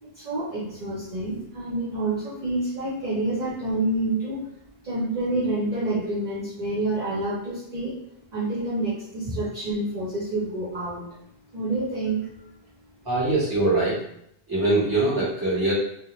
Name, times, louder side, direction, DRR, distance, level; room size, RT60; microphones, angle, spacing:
voice 1, 0.0-4.4 4.8-7.9 8.3-11.0 11.5-12.3, right 2 dB, 50° right, -7 dB, 0.6 m, -28 dB
voice 2, 13.1-14.0 14.5-15.7, right 2 dB, 20° right, -7 dB, 0.9 m, -22 dB
2.1 x 2.1 x 3.0 m, 0.74 s
omnidirectional pair, 1.1 m